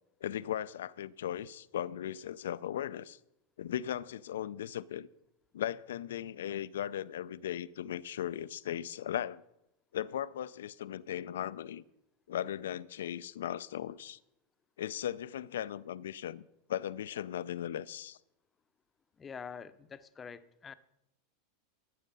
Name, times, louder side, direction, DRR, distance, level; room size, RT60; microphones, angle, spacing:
voice 1, 0.2-3.2 3.6-5.1 5.5-9.4 9.9-11.8 12.3-14.2 14.8-16.4 16.7-18.2, left 10 dB, 85° left, 0.4 m, -37 dB
voice 2, 19.2-20.7, left 6 dB, 20° left, 0.6 m, -46 dB
14.0 x 6.5 x 5.5 m
hypercardioid pair, 115°, 0 cm